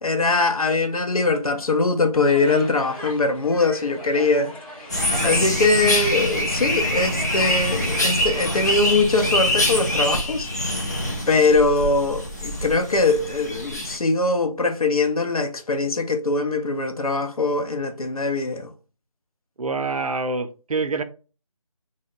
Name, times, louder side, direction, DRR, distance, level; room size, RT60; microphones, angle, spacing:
voice 1, 0.0-4.5 5.2-10.5 11.3-18.7, left 3 dB, 85° left, 0.6 m, -22 dB
sound 1, 2.2-8.8, equal, 10° left, 1.3 m, -39 dB
sound 2, 4.9-14.0, left 1 dB, 30° left, 0.6 m, -24 dB
voice 2, 19.6-21.0, right 3 dB, 80° right, 0.5 m, -26 dB
2.3 x 2.1 x 3.6 m
figure-of-eight pair, 165°, 18 cm